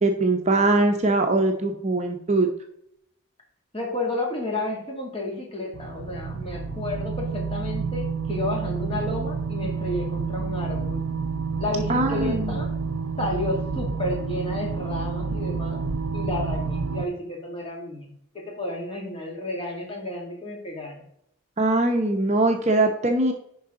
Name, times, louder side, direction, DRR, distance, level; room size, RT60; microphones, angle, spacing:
voice 1, 0.0-2.5 11.9-12.6 21.6-23.3, right 2 dB, 30° right, 4 dB, 0.8 m, -21 dB
voice 2, 3.7-11.0 11.6-12.7 13.2-15.8 16.1-21.0, left 2 dB, 25° left, -1 dB, 2.2 m, -31 dB
sound 1, 5.7-17.0, right 5 dB, 80° right, 0.6 m, -29 dB
11.0 x 4.8 x 3.7 m, 0.73 s
head